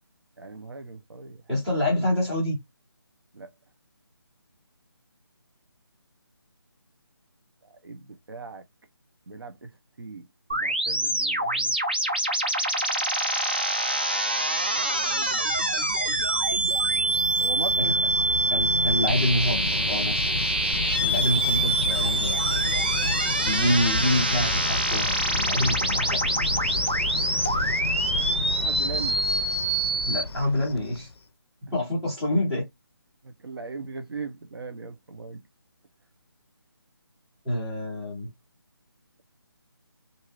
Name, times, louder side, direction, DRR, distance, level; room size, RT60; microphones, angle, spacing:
voice 1, 0.4-1.4 3.3-3.5 7.8-8.6 9.3-10.2 10.5-11.8 15.0-15.3 17.4-18.3 28.5-29.2 33.2-35.4, right 4 dB, 70° right, 0.8 m, -39 dB
voice 2, 1.5-2.6 17.8-17.9 18.5-20.2 21.0-22.5 23.4-26.2 30.0-31.1 31.7-32.6 37.4-38.3, left 1 dB, ahead, 0.8 m, -27 dB
sound 1, 10.5-30.2, right 2 dB, 25° right, 0.3 m, -25 dB
Cricket, 15.5-31.2, left 4 dB, 85° left, 0.4 m, -32 dB
3.1 x 2.7 x 2.4 m
hypercardioid pair, 175°, 13 cm